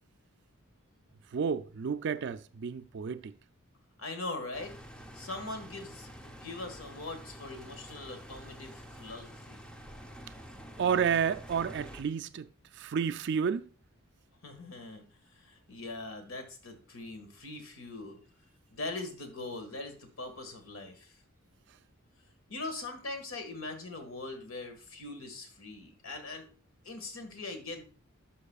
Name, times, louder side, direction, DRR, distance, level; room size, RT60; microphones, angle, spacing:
voice 1, 1.3-3.3 10.8-12.5 12.7-13.7, right 7 dB, 55° right, 0.4 m, -31 dB
voice 2, 4.0-4.7 5.1-9.6 14.4-15.0 15.3-18.2 18.7-21.2 22.5-26.5 26.8-27.9, left 2 dB, 75° left, 1.7 m, -41 dB
sound 1, 4.5-12.0, equal, 5° left, 0.7 m, -48 dB
11.5 x 5.4 x 2.3 m
head